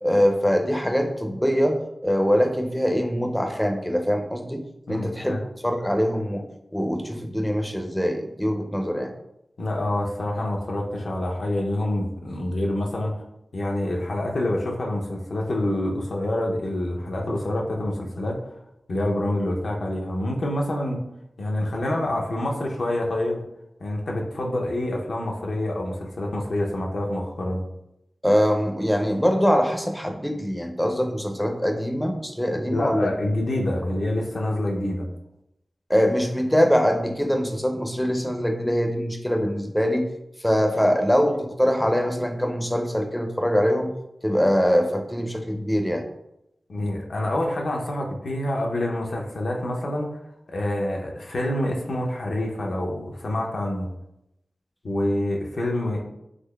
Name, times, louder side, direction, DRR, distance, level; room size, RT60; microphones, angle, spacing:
voice 1, 0.0-5.3 5.6-6.4 6.7-9.1 28.2-33.1 35.9-40.1 40.4-43.9 44.2-46.0, equal, 5° left, 4 dB, 0.4 m, -23 dB
voice 2, 4.9-5.4 9.6-13.2 13.5-18.4 18.9-21.0 21.4-23.4 23.8-27.6 32.6-35.1 46.7-50.2 50.5-53.9 54.8-56.0, left 1 dB, 75° left, 1 dB, 0.5 m, -27 dB
3.7 x 2.9 x 2.2 m, 0.86 s
cardioid pair, 55°, 0 cm